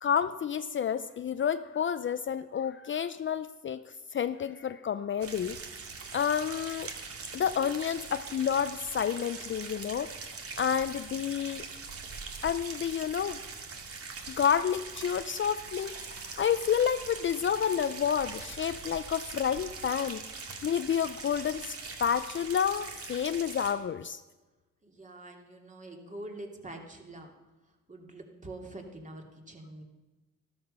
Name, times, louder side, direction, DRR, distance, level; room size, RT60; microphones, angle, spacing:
voice 1, 0.0-5.6 6.1-6.9 7.3-10.1 10.6-11.6 12.4-13.4 14.3-20.2 20.6-24.2, left 8 dB, 40° left, 12 dB, 0.5 m, -30 dB
sound 1, 5.2-23.7, right 4 dB, 50° right, 2.1 m, -42 dB
voice 2, 24.8-27.3 27.9-29.8, right 2 dB, 25° right, 2 dB, 2.8 m, -45 dB
13.5 x 12.5 x 5.5 m, 1.2 s
cardioid pair, 90°, 30 cm